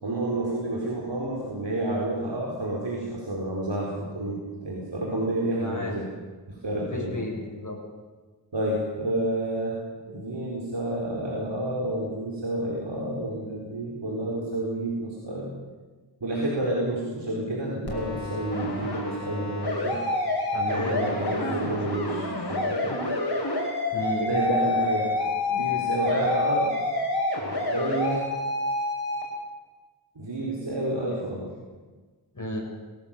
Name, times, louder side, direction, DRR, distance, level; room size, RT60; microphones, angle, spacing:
voice 1, 0.0-6.0 6.5-7.2 8.5-9.8 10.1-15.5 16.2-20.0 20.7-22.9 24.2-25.1 25.5-26.8 27.7-28.3 30.2-31.5, right 1 dB, 80° right, -4 dB, 4.4 m, -29 dB
voice 2, 5.6-6.0 6.7-7.8 20.5-21.1 21.4-21.6 23.9-24.3 32.3-32.6, left 1 dB, 45° left, 0 dB, 6.9 m, -33 dB
sound 1, 17.9-29.2, left 2 dB, 65° left, 6.1 m, -28 dB
21.5 x 17.5 x 7.3 m, 1.3 s
wide cardioid pair, 50°, 42 cm